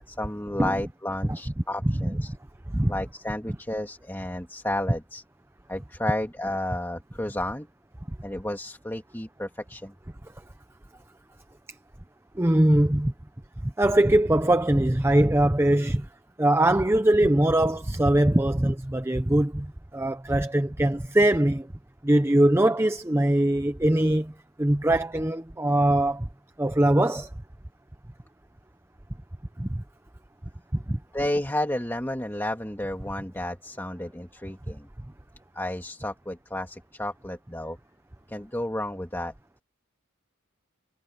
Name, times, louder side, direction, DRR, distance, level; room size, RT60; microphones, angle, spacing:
voice 1, 0.2-2.3 2.9-5.2 5.7-7.7 8.2-9.9 31.1-34.9 35.5-37.8 38.3-39.3, left 1 dB, 10° left, 2.1 m, -31 dB
voice 2, 1.8-2.2 2.7-2.9 12.4-13.1 13.6-16.1 16.4-21.7 22.0-24.3 24.6-26.3 26.6-27.3 29.6-29.8 30.7-31.0, right 1 dB, 10° right, 0.6 m, -22 dB
head